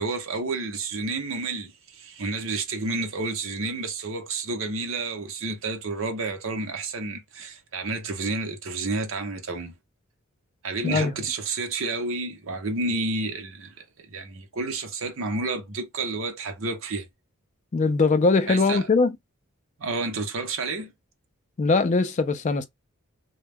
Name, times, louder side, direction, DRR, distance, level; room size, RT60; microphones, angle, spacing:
voice 1, 0.0-9.7 10.6-17.1 18.5-18.9 19.8-20.9, right 3 dB, 60° right, 0.6 m, -30 dB
voice 2, 10.8-11.1 17.7-19.2 21.6-22.7, left 3 dB, 30° left, 0.3 m, -21 dB
2.2 x 2.0 x 3.3 m
head